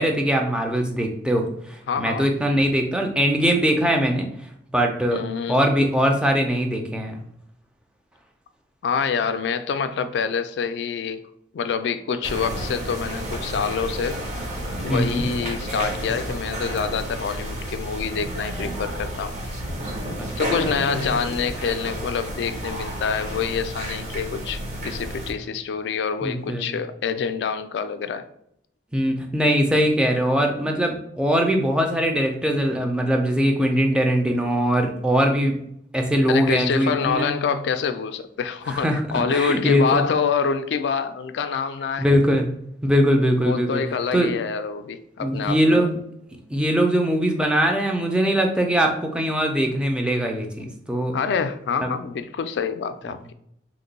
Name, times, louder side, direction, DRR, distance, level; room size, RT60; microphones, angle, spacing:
voice 1, 0.0-4.3 4.7-5.2 5.5-7.2 14.9-15.3 20.2-20.3 26.2-26.7 28.9-35.6 35.9-37.3 38.7-39.0 39.3-40.0 42.0-42.5 42.8-43.8 44.1-44.3 45.2-46.0 46.5-51.1 51.8-51.9, equal, 5° right, 2 dB, 0.4 m, -21 dB
voice 2, 1.9-2.3 5.1-5.6 8.8-11.2 11.5-14.2 14.8-19.4 20.4-28.2 36.3-42.1 43.4-45.8 51.1-53.3, left 6 dB, 80° left, 10 dB, 0.3 m, -26 dB
sound 1, 12.2-25.3, right 1 dB, 40° right, 0.7 m, -31 dB
2.9 x 2.2 x 3.9 m, 0.72 s
head